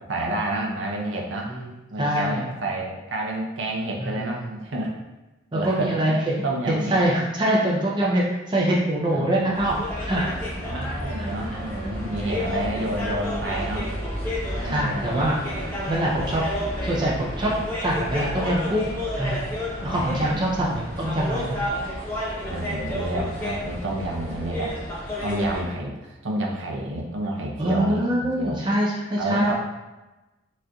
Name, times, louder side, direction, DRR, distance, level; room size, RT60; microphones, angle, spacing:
voice 1, 0.1-1.5 1.9-4.9 5.5-7.0 9.1-9.4 10.6-13.9 14.6-15.4 19.8-20.8 22.4-24.8 25.2-28.6 29.2-29.5, right 1 dB, 75° right, -1 dB, 0.6 m, -29 dB
voice 2, 1.5-2.5 4.0-4.4 5.5-6.3 6.7-10.4 10.7-10.9 11.2-11.3 11.9-12.2 14.6-15.4 15.9-16.4 16.8-17.5 17.8-18.9 19.2-19.5 19.8-21.6 27.6-29.5, right 1 dB, 20° right, -4 dB, 0.4 m, -24 dB
sound 1, 9.5-25.6, equal, 10° left, 0.8 m, -31 dB
4.2 x 2.5 x 2.3 m, 1.1 s
head